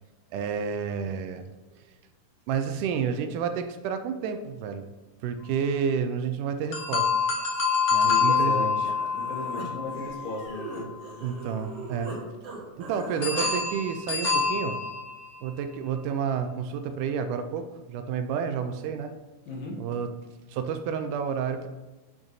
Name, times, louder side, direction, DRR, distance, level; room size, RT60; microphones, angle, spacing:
voice 1, 0.3-1.5 1.8-1.9 2.5-4.8 5.2-7.1 7.9-8.9 11.2-12.1 12.8-14.8 15.4-19.1 19.8-20.1 20.5-21.7, right 7 dB, 80° right, 8 dB, 2.0 m, -30 dB
sound 1, 6.7-10.8 13.2-15.6, left 5 dB, 55° left, 1.2 m, -26 dB
voice 2, 8.0-8.7 9.1-10.9 19.5-19.8, left 3 dB, 70° left, -3 dB, 3.0 m, -35 dB
Human voice, 8.8-12.2 12.4-13.5, right 2 dB, 55° right, 2.2 m, -40 dB
8.6 x 6.1 x 2.7 m, 1.2 s
omnidirectional pair, 3.8 m